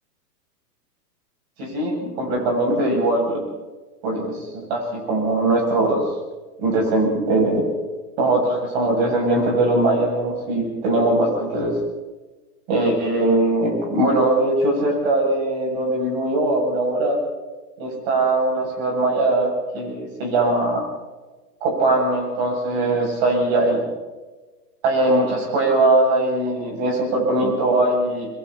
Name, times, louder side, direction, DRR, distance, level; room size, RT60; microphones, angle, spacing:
voice 1, 1.6-3.4 4.0-6.0 6.6-7.6 8.2-11.7 12.7-17.2 17.8-20.8 21.6-23.9 24.8-28.3, right 2 dB, 40° right, 0 dB, 8.0 m, -21 dB
27.5 x 22.0 x 4.4 m, 1.2 s
hypercardioid pair, 165°, 49 cm